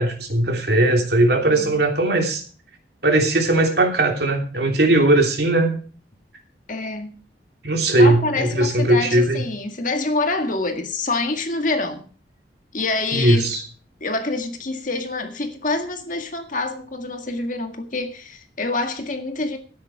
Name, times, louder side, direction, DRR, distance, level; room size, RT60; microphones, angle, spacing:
voice 1, 0.0-2.4 3.0-5.7 7.6-9.4 13.1-13.6, right 1 dB, 60° right, 3.1 m, -18 dB
voice 2, 1.4-1.8 6.7-7.2 7.9-12.0 12.7-13.5 14.0-19.6, left 3 dB, 45° left, 1.9 m, -26 dB
13.5 x 9.7 x 4.9 m
head